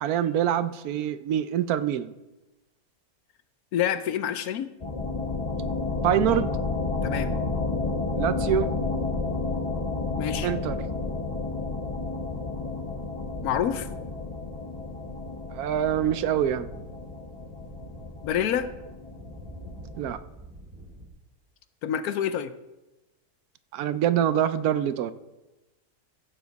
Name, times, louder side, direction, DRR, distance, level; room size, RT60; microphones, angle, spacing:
voice 1, 0.0-2.1 6.0-6.5 8.1-8.7 10.4-10.7 15.5-16.7 20.0-20.2 23.7-25.1, right 10 dB, 75° right, 13 dB, 1.0 m, -25 dB
voice 2, 3.7-4.7 7.0-7.4 10.2-10.5 13.4-13.9 18.2-18.7 21.8-22.5, left 9 dB, 75° left, 12 dB, 1.1 m, -27 dB
sound 1, 4.8-20.2, left 3 dB, 30° left, 0.8 m, -31 dB
sound 2, 11.8-21.1, right 1 dB, 35° right, 2.4 m, -47 dB
15.5 x 7.3 x 4.0 m, 1.0 s
omnidirectional pair, 1.6 m